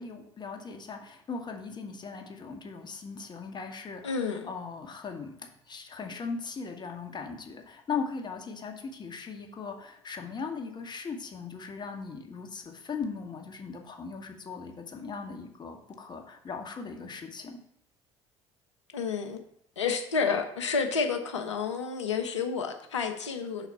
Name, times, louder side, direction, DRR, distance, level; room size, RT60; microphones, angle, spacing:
voice 1, 0.0-17.6, left 5 dB, 30° left, 3 dB, 1.0 m, -39 dB
voice 2, 4.0-4.5 18.9-19.4 19.8-23.7, left 5 dB, 80° left, 6 dB, 0.7 m, -30 dB
6.0 x 4.0 x 5.6 m, 0.71 s
figure-of-eight pair, 55°, 15 cm